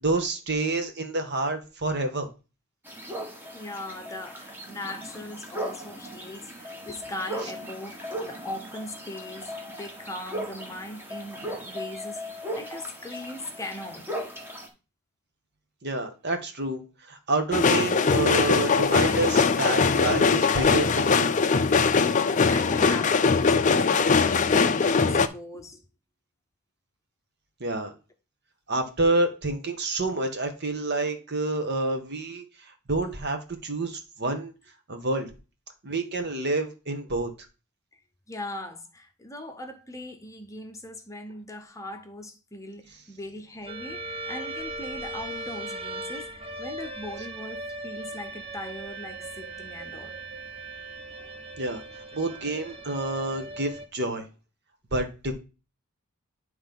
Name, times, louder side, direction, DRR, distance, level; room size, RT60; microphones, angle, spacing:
voice 1, 0.0-2.3 15.8-16.8 17.1-21.3 27.6-27.9 28.7-32.4 32.9-34.5 34.9-35.3 35.8-37.3 51.6-51.8 52.1-54.2 54.9-55.3, right 2 dB, 50° right, 1.3 m, -28 dB
sound 1, 2.9-14.7, equal, 10° right, 1.3 m, -38 dB
voice 2, 3.5-14.1 22.5-25.8 38.3-50.2, left 1 dB, 15° left, 0.8 m, -39 dB
sound 2, 17.5-25.3, left 5 dB, 35° left, 0.5 m, -21 dB
sound 3, 43.7-53.9, right 2 dB, 25° right, 0.8 m, -38 dB
9.7 x 3.2 x 5.3 m
head